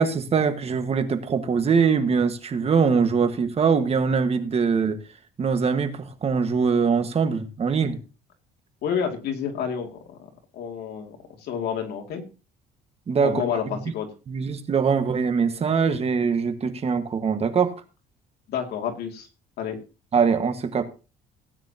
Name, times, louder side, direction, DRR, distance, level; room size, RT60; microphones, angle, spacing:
voice 1, 0.0-5.0 5.4-8.0 13.1-13.4 14.3-17.7 20.1-20.8, right 5 dB, 35° right, 9 dB, 1.5 m, -22 dB
voice 2, 8.8-10.2 10.5-12.2 13.2-14.1 18.5-19.3 19.6-19.8, left 7 dB, 70° left, 3 dB, 2.4 m, -29 dB
16.5 x 9.1 x 2.9 m, 0.32 s
cardioid pair, 110°, 17 cm